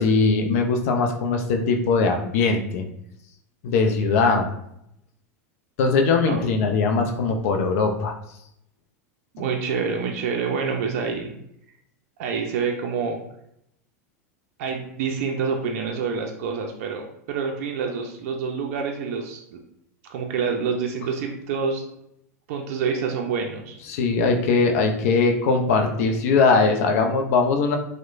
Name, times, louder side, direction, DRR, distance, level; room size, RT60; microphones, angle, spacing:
voice 1, 0.0-2.8 3.6-4.5 5.8-8.1 23.9-27.8, left 4 dB, 65° left, 4 dB, 0.4 m, -20 dB
voice 2, 6.3-6.7 9.3-11.4 12.2-13.2 14.6-19.6 20.1-21.8 22.5-23.8, right 5 dB, 65° right, 2 dB, 0.4 m, -27 dB
2.9 x 2.0 x 2.4 m, 0.77 s
hypercardioid pair, 100°, 8 cm